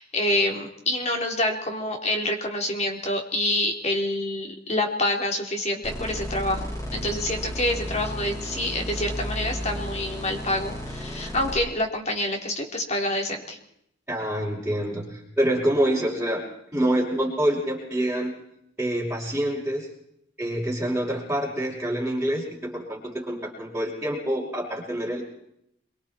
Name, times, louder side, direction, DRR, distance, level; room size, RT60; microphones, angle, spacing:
voice 1, 0.0-13.6, left 1 dB, 35° left, 2 dB, 3.6 m, -27 dB
Sweeping Saw Pulse, 5.8-11.6, equal, 20° left, 4.5 m, -33 dB
voice 2, 14.1-16.4 16.7-18.3 18.8-19.9 20.4-25.2, right 1 dB, 10° right, -9 dB, 5.5 m, -26 dB
27.5 x 23.5 x 4.5 m, 0.76 s
head